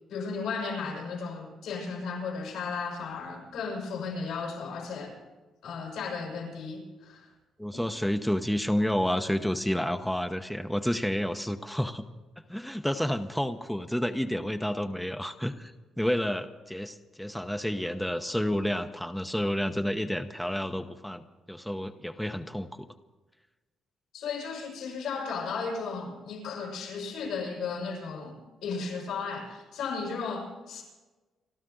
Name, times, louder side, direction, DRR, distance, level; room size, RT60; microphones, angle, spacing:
voice 1, 0.1-5.1 5.6-7.3 7.7-7.9 24.1-30.8, left 5 dB, 85° left, -1 dB, 6.2 m, -35 dB
voice 2, 7.6-12.0 12.5-22.9, equal, 5° left, 7 dB, 0.8 m, -30 dB
28.5 x 12.5 x 4.0 m, 1.2 s
cardioid pair, 90°, 0 cm